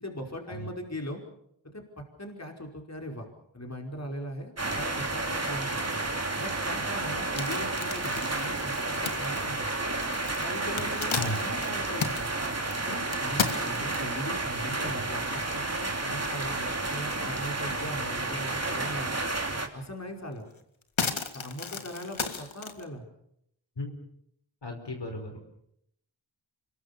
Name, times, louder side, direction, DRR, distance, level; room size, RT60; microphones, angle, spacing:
voice 1, 0.0-1.2 1.7-1.8 2.2-3.3 3.5-5.9 6.4-9.7 10.4-12.3 12.8-19.1 19.7-20.5 21.3-23.1, equal, 35° left, 2 dB, 5.2 m, -39 dB
sound 1, 4.6-19.7, right 2 dB, 35° right, 3.2 m, -31 dB
sound 2, 7.1-14.3 14.9-15.0 15.4-15.5 15.8-16.7 17.0-18.0 18.4-18.5 19.8-19.9 20.3-22.8, left 5 dB, 85° left, 2.0 m, -35 dB
voice 2, 24.6-25.4, left 1 dB, 65° left, 3 dB, 5.0 m, -35 dB
26.0 x 22.0 x 6.9 m, 0.74 s
cardioid pair, 45°, 46 cm